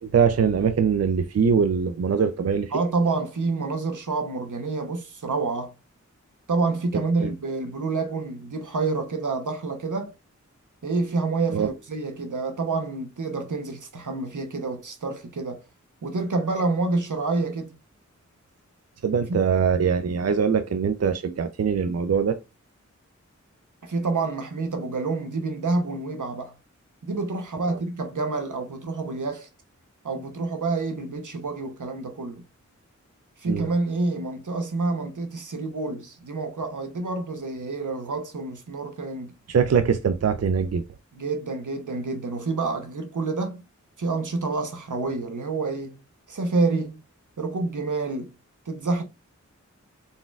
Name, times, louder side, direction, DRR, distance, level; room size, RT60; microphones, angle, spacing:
voice 1, 0.0-2.7 6.9-7.3 11.5-11.7 19.0-22.4 27.6-27.8 33.5-33.7 39.5-40.8, right 6 dB, 55° right, 0.4 m, -23 dB
voice 2, 2.7-5.7 6.5-10.1 10.8-15.6 16.0-17.7 19.3-19.4 23.8-26.5 27.0-29.5 30.0-32.4 33.4-39.3 41.2-43.6 44.0-46.0 46.3-47.0 47.4-48.3 48.7-49.0, right 3 dB, 80° right, 0.8 m, -28 dB
4.1 x 3.7 x 2.3 m
wide cardioid pair, 50°, 30 cm